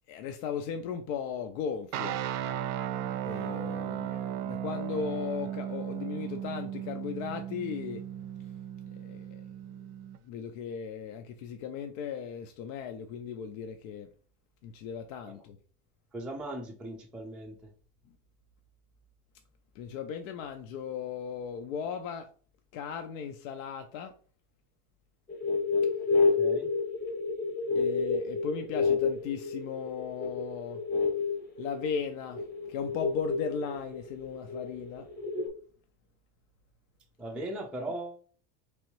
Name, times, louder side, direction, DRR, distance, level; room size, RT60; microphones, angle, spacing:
voice 1, 0.1-2.2 3.2-8.1 8.4-8.5 8.9-9.5 10.2-14.1 14.6-15.6 19.7-22.3 22.7-24.1 27.8-30.8 31.6-35.1, left 7 dB, 80° left, 6 dB, 0.6 m, -37 dB
sound 1, 1.9-10.2, right 10 dB, 60° right, 0.5 m, -36 dB
voice 2, 16.1-17.6 26.4-26.7 37.2-38.2, right 1 dB, 5° right, 1 dB, 0.3 m, -38 dB
sound 2, 25.3-35.5, left 4 dB, 25° left, 0.9 m, -30 dB
3.4 x 3.1 x 3.0 m, 0.43 s
supercardioid pair, 120°, 39 cm